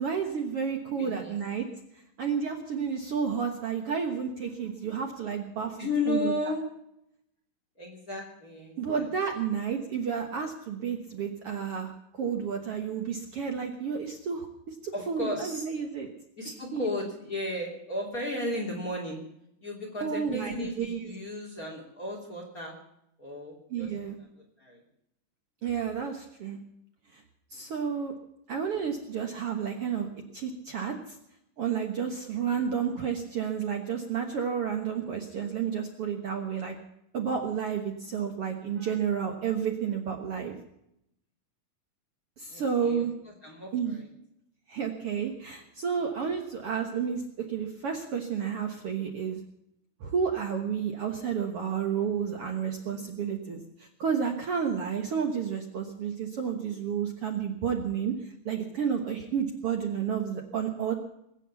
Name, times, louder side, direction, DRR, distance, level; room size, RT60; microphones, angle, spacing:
voice 1, 0.0-1.7 2.2-5.8 6.1-6.3 8.8-16.1 16.7-16.9 20.0-21.0 23.7-24.2 25.6-26.6 27.1-27.2 27.5-28.1 28.5-30.1 30.3-31.2 31.6-36.8 37.1-40.6 42.4-43.1 43.7-44.0 44.7-47.2 47.5-49.4 50.0-58.1 58.5-60.9, right 7 dB, 55° right, 4 dB, 1.9 m, -31 dB
voice 2, 1.0-1.3 5.8-6.6 7.8-9.1 14.9-15.6 16.4-19.2 19.6-22.7 23.2-23.9 24.2-24.3 24.6-24.8 32.5-32.6 42.5-43.0 43.4-44.1, left 2 dB, 25° left, 0 dB, 3.2 m, -34 dB
21.0 x 9.2 x 7.1 m, 0.79 s
omnidirectional pair, 3.7 m